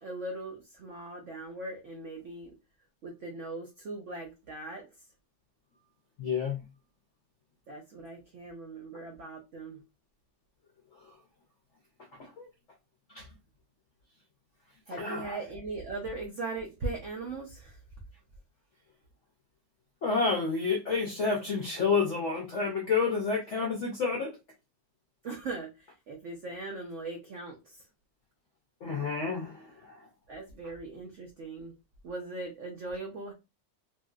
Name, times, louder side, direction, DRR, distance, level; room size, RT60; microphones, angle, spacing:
voice 1, 0.0-2.6 3.0-4.9 7.7-9.8 14.9-17.8 25.2-27.9 30.3-31.8 32.0-33.3, right 2 dB, 80° right, 0.6 m, -39 dB
voice 2, 6.2-6.6 10.9-11.2 12.2-12.5 13.1-13.3 15.0-15.4 20.0-24.4 28.8-30.1, left 4 dB, 65° left, 0.7 m, -30 dB
3.0 x 2.7 x 2.3 m
omnidirectional pair, 2.0 m